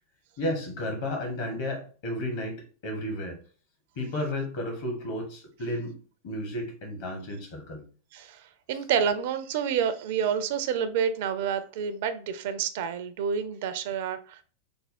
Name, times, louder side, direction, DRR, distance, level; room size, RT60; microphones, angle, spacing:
voice 1, 0.4-3.4 4.0-6.0 6.2-7.8, left 1 dB, 50° left, 3 dB, 1.2 m, -33 dB
voice 2, 8.1-14.4, right 7 dB, 50° right, 10 dB, 0.4 m, -29 dB
3.4 x 2.0 x 4.2 m, 0.40 s
figure-of-eight pair, 90°, 0 cm